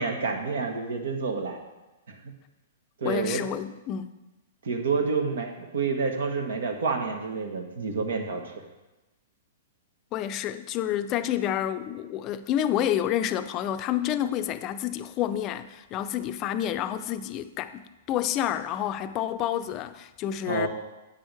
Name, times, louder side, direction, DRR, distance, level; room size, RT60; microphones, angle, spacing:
voice 1, 0.0-1.6 3.0-3.4 4.6-8.5 20.5-20.7, right 4 dB, 80° right, 4 dB, 1.4 m, -28 dB
voice 2, 3.0-4.1 10.1-20.7, left 11 dB, 35° left, 11 dB, 0.4 m, -29 dB
8.5 x 6.3 x 4.7 m, 1.0 s
hypercardioid pair, 135°, 0 cm